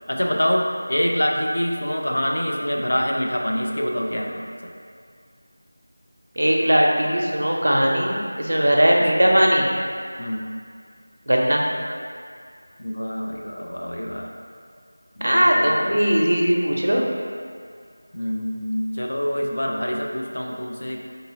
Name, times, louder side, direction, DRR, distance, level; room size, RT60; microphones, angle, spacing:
voice 1, 0.1-4.7 10.2-10.5 12.8-14.3 15.2-16.0 18.1-21.0, equal, 60° left, 0 dB, 0.4 m, -26 dB
voice 2, 6.4-9.7 11.3-11.6 15.2-17.0, equal, 70° right, -2 dB, 0.5 m, -19 dB
3.7 x 2.7 x 2.6 m, 2.1 s
figure-of-eight pair, 180°, 0 cm